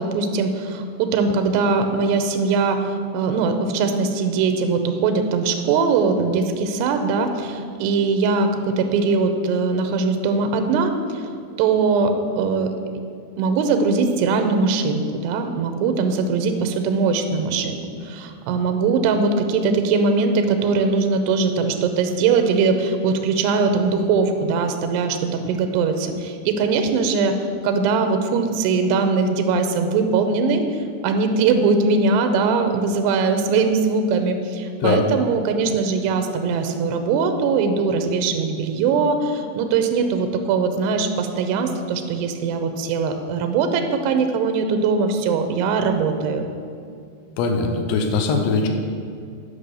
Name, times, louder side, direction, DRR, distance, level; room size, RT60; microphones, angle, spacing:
voice 1, 0.0-11.2 11.6-12.7 13.4-27.4 27.6-46.5, right 4 dB, 85° right, 7 dB, 2.9 m, -21 dB
voice 2, 47.4-48.7, left 4 dB, 85° left, 3 dB, 3.1 m, -21 dB
10.5 x 5.3 x 6.9 m, 2.3 s
omnidirectional pair, 4.8 m